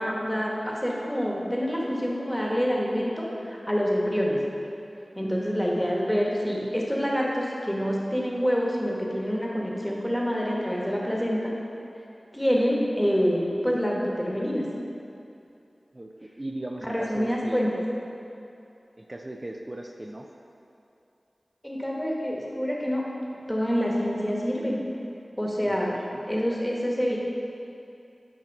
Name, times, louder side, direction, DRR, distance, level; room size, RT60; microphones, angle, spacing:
voice 1, 0.0-4.4 5.1-11.5 12.3-14.6 16.8-17.7 21.6-23.0 23.5-24.8 25.4-25.9 26.3-27.2, equal, 5° left, -3 dB, 1.2 m, -26 dB
voice 2, 16.4-17.6 19.0-20.3 25.6-26.2, right 1 dB, 35° right, 1 dB, 0.4 m, -37 dB
8.5 x 2.9 x 5.3 m, 2.8 s
wide cardioid pair, 40°, 0 cm